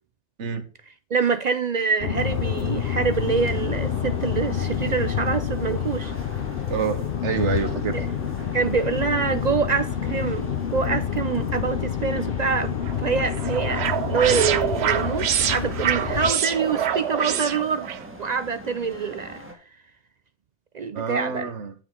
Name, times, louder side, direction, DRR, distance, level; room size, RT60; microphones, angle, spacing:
voice 1, 1.1-6.1 7.9-8.1 8.5-17.9 18.2-19.4 20.7-21.5, right 5 dB, 55° right, 0.5 m, -25 dB
sound 1, 2.0-16.3, left 9 dB, 55° left, 0.8 m, -28 dB
sound 2, 2.2-19.5, equal, 10° right, 1.6 m, -41 dB
voice 2, 6.7-8.0 20.9-21.7, right 5 dB, 90° right, 1.3 m, -27 dB
sound 3, 12.8-18.0, right 9 dB, 70° right, 0.9 m, -26 dB
8.8 x 7.4 x 3.6 m
omnidirectional pair, 1.2 m